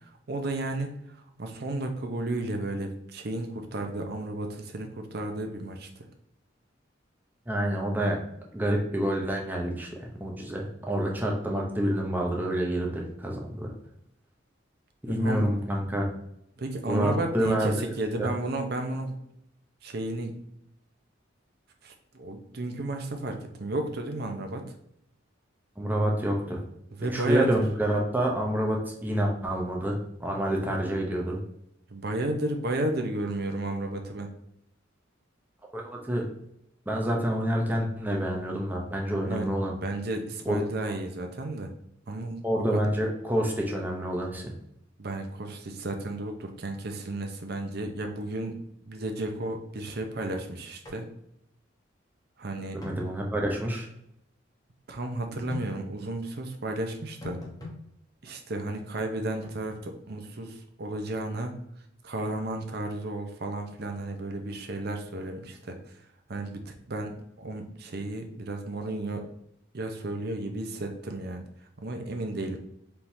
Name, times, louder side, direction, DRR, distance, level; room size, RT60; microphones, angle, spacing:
voice 1, 0.0-5.9 15.1-15.4 16.6-19.2 19.8-20.4 21.8-24.6 27.0-27.5 31.9-34.3 39.3-41.7 42.1-42.8 45.0-48.6 48.9-51.0 52.4-52.8 54.9-57.4 58.2-61.6 62.0-66.0 66.3-69.2 69.7-71.5 71.8-72.6, right 2 dB, 55° right, 5 dB, 0.7 m, -33 dB
voice 2, 7.5-8.2 8.5-13.7 15.0-16.1 16.8-18.3 25.8-26.6 27.1-31.4 35.7-36.3 36.9-39.7 40.5-40.6 42.4-44.5 52.7-53.9, right 1 dB, 10° right, -1 dB, 0.7 m, -28 dB
sound 1, 50.8-51.0 51.3-51.4 52.8-53.0 55.5-55.7 57.2-57.8 59.4-59.6, left 2 dB, 20° left, 1.1 m, -40 dB
4.5 x 3.6 x 2.7 m, 0.77 s
head